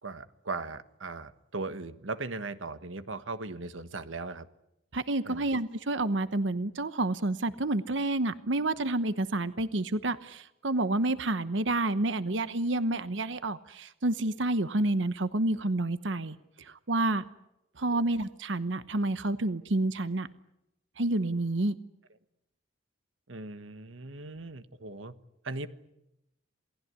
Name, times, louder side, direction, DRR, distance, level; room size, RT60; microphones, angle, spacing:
voice 1, 0.0-4.5 5.2-5.5 17.9-18.0 23.3-25.1 25.4-25.7, right 3 dB, 85° right, 12 dB, 1.5 m, -38 dB
voice 2, 4.9-17.2 17.8-20.3 21.0-21.7, right 2 dB, 70° right, 13 dB, 1.0 m, -29 dB
28.0 x 19.0 x 9.7 m, 0.86 s
head